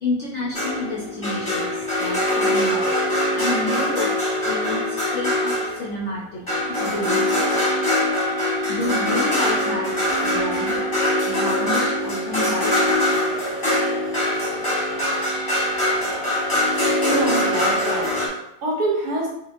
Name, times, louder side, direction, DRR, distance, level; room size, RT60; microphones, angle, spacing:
voice 1, 0.0-4.1 4.4-6.4 6.7-7.6 8.2-10.8 11.2-12.7 13.2-13.6, left 1 dB, 60° left, -5 dB, 0.8 m, -30 dB
sound 1, 0.5-5.9 6.5-18.3, left 1 dB, 20° left, 0.9 m, -22 dB
voice 2, 17.0-19.3, right 2 dB, 70° right, -4 dB, 1.6 m, -26 dB
4.6 x 2.4 x 2.4 m, 0.80 s
omnidirectional pair, 1.8 m